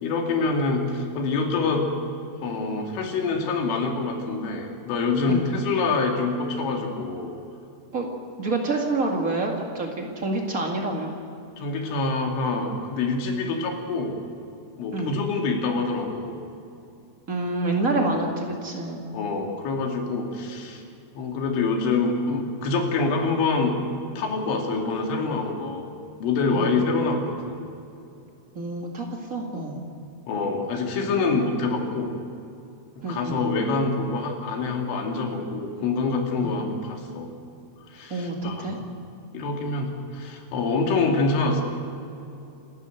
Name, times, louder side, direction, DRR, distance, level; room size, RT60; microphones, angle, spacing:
voice 1, 0.0-1.9 2.4-7.3 11.6-14.2 14.8-16.4 17.9-18.1 19.1-20.8 21.1-23.8 24.2-25.9 26.2-27.7 30.3-32.1 33.0-37.3 37.9-38.7 39.3-41.6, left 3 dB, 90° left, 2 dB, 5.1 m, -26 dB
voice 2, 8.4-11.1 14.9-15.1 17.3-19.0 26.5-26.7 28.5-29.8 33.0-33.4 36.4-36.6 38.1-38.8, right 2 dB, 55° right, 1 dB, 0.9 m, -27 dB
29.0 x 13.0 x 7.9 m, 2.7 s
omnidirectional pair, 5.4 m